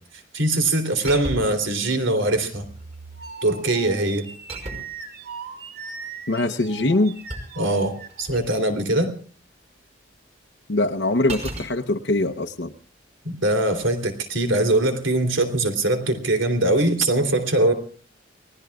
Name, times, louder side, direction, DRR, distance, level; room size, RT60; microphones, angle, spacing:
voice 1, 0.3-2.7 3.4-4.3 7.6-9.1 13.4-17.7, right 2 dB, 90° right, 7 dB, 3.3 m, -22 dB
sound 1, 1.0-1.7 2.6-3.1 4.5-5.1 6.8-8.5 11.3-11.7 13.7-14.0, right 1 dB, 35° right, 5.2 m, -35 dB
sound 2, 2.2-8.6, right 5 dB, 55° right, 3.1 m, -40 dB
voice 2, 6.3-7.2 10.7-12.7, left 2 dB, 65° left, 4 dB, 0.9 m, -22 dB
29.5 x 20.0 x 2.4 m, 0.42 s
head